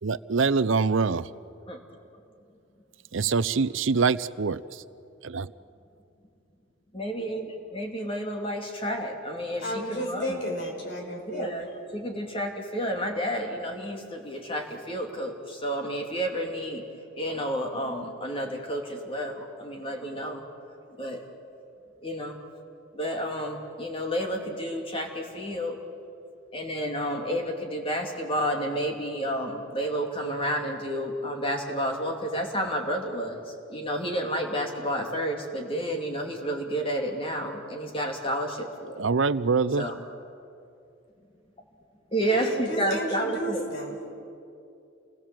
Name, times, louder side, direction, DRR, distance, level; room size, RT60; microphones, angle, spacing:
voice 1, 0.0-1.3 3.1-4.8 5.2-5.5 39.0-39.9, right 4 dB, 70° right, 17 dB, 0.6 m, -24 dB
voice 2, 6.9-10.4 11.3-11.7 11.9-16.8 17.1-20.4 21.0-21.2 22.0-22.4 22.9-25.8 26.5-39.0 39.8-40.0 42.1-43.6, equal, 25° left, 2 dB, 2.7 m, -30 dB
voice 3, 9.6-11.5 42.2-44.1, equal, 60° left, 1 dB, 5.1 m, -33 dB
29.0 x 20.5 x 7.7 m, 2.6 s
head